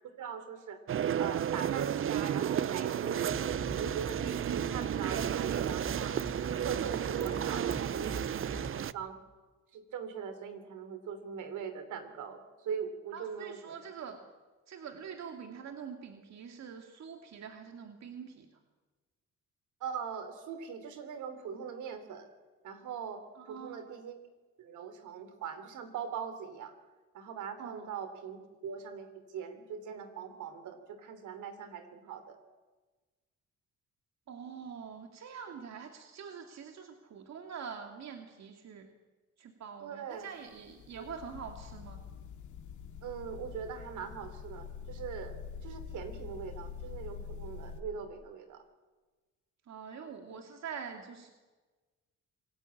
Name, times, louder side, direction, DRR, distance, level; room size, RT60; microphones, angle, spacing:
voice 1, 0.2-0.8 1.2-6.2 6.5-8.2 8.9-9.2 9.7-13.8 19.8-22.3 22.6-24.2 24.6-26.7 27.1-32.4 39.8-40.3 41.0-41.1 43.0-45.3 45.6-48.6, right 7 dB, 80° right, 9 dB, 3.4 m, -41 dB
sound 1, 0.9-8.9, right 9 dB, 45° right, 0.7 m, -32 dB
sound 2, 3.3-8.8, right 3 dB, 30° right, 5.3 m, -42 dB
voice 2, 7.4-8.1 13.1-14.2 14.7-18.5 23.3-23.8 27.6-27.9 34.3-38.9 39.4-42.0 49.7-51.3, right 6 dB, 60° right, 4 dB, 2.4 m, -45 dB
sound 3, 40.5-47.8, left 6 dB, 75° left, 2.1 m, -45 dB
26.5 x 18.0 x 8.7 m, 1.3 s
cardioid pair, 90°, 30 cm